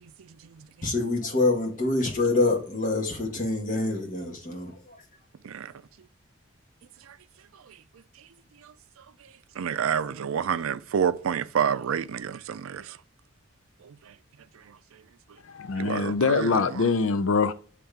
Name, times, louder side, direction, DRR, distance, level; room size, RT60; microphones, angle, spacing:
voice 1, 0.8-4.8, left 2 dB, 40° left, 1.6 m, -26 dB
voice 2, 9.6-13.0 13.8-13.9 15.8-16.8, right 7 dB, 85° right, 0.4 m, -28 dB
voice 3, 15.4-17.5, left 4 dB, 75° left, 0.5 m, -24 dB
8.7 x 3.3 x 3.4 m
head